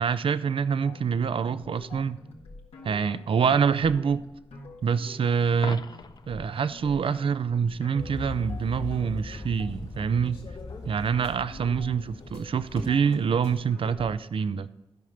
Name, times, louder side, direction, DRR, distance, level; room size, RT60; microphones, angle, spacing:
voice 1, 0.0-2.2 2.8-4.2 4.8-5.8 6.3-10.4 10.8-14.7, right 6 dB, 60° right, 0.5 m, -26 dB
sound 1, 0.8-14.1, left 3 dB, 85° left, 1.7 m, -47 dB
Coin (dropping), 5.5-6.4 12.5-12.6, left 4 dB, 40° left, 0.6 m, -40 dB
sound 2, 8.0-13.6, left 3 dB, 65° left, 2.6 m, -40 dB
13.0 x 5.6 x 5.1 m
cardioid pair, 60°, 10 cm